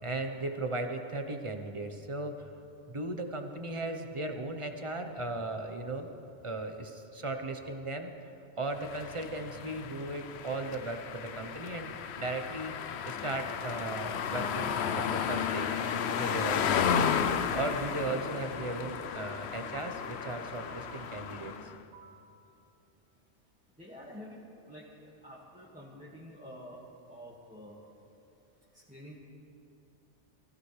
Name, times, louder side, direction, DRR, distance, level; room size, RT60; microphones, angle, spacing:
voice 1, 0.0-2.4 2.9-6.1 6.4-8.1 8.6-12.7 13.1-15.7 16.2-17.0 17.5-21.5, right 2 dB, 30° right, 5 dB, 1.0 m, -37 dB
sound 1, 8.8-21.8, left 7 dB, 70° left, 0.9 m, -33 dB
sound 2, 13.6-14.0 14.8-17.4 18.2-19.0 19.8-22.4, right 3 dB, 80° right, 1.7 m, -54 dB
voice 2, 23.8-24.4 24.7-26.8 27.1-27.8 28.9-29.2, equal, 5° right, -7 dB, 1.9 m, -48 dB
24.0 x 15.5 x 3.3 m, 2.7 s
omnidirectional pair, 1.2 m